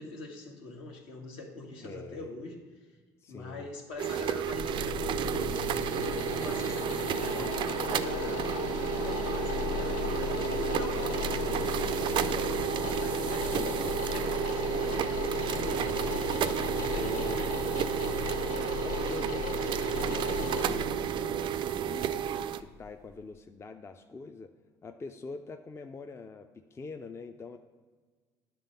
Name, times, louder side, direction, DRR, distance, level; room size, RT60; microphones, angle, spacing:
voice 1, 0.0-2.6 3.3-5.5 5.9-8.5 8.9-16.4 16.7-17.8, left 2 dB, 70° left, 1 dB, 1.3 m, -44 dB
voice 2, 1.8-2.3 3.2-3.7 13.3-13.9 16.8-17.4 18.8-24.5 24.8-27.6, left 4 dB, 25° left, 6 dB, 0.4 m, -44 dB
sound 1, 4.0-22.6, right 10 dB, 55° right, 0.4 m, -32 dB
sound 2, 4.1-23.0, left 6 dB, 90° left, 0.6 m, -36 dB
9.8 x 3.4 x 5.5 m, 1.4 s
supercardioid pair, 70°, 10 cm